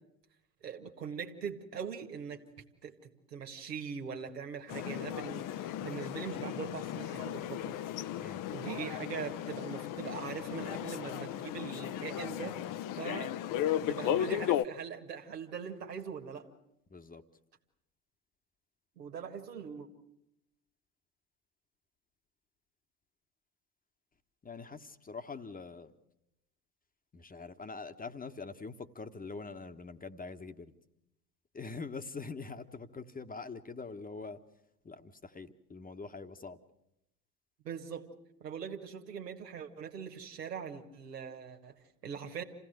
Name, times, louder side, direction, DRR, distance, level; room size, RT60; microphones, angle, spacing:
voice 1, 0.6-2.4 2.8-7.7 8.5-12.6 12.9-13.3 13.9-16.5 19.0-19.9 37.6-38.1 38.4-42.4, right 7 dB, 80° right, 3 dB, 1.9 m, -41 dB
sound 1, 4.7-14.7, left 11 dB, 40° left, 0.8 m, -35 dB
voice 2, 16.9-17.2 24.4-25.9 27.1-30.7 31.5-34.4 34.8-36.6, left 4 dB, 20° left, 9 dB, 1.2 m, -44 dB
27.5 x 16.5 x 7.8 m, 0.84 s
figure-of-eight pair, 65°, 48 cm